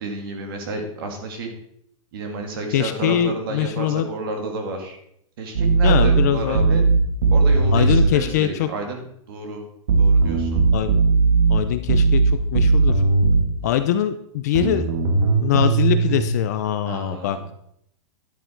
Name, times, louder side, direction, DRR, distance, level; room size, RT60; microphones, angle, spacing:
voice 1, 0.0-1.5 2.1-5.0 5.4-6.8 7.3-9.6 10.0-10.6 16.9-17.4, right 3 dB, 45° right, 4 dB, 2.3 m, -31 dB
voice 2, 2.7-4.1 5.8-6.7 7.7-8.7 10.7-11.0 11.5-12.9 13.6-14.8 15.4-17.4, left 11 dB, 30° left, 10 dB, 0.5 m, -22 dB
sound 1, 5.6-8.1 9.9-13.5 14.6-16.2, right 4 dB, 60° right, 2.6 m, -17 dB
10.5 x 8.0 x 4.6 m, 0.72 s
supercardioid pair, 180°, 17 cm